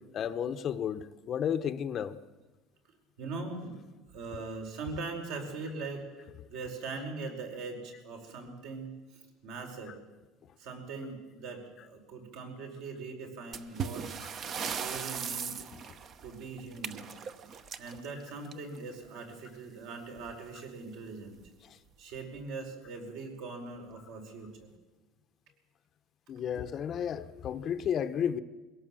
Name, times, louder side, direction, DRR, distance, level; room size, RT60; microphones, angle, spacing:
voice 1, 0.1-2.2 4.3-4.4 9.9-10.0 14.2-14.3 15.7-15.8 21.6-21.8 26.3-28.4, left 8 dB, 35° left, 0.8 m, -33 dB
voice 2, 3.2-3.7 4.1-8.9 9.4-10.0 10.6-14.1 14.6-15.7 16.2-17.1 17.8-21.4 22.0-24.7, right 3 dB, 65° right, 4.9 m, -41 dB
sound 1, 13.5-18.9 20.2-20.3 20.6-20.7 21.4-21.5 22.2-22.4, right 7 dB, 35° right, 0.9 m, -38 dB
22.0 x 17.5 x 7.6 m
cardioid pair, 150°, 0 cm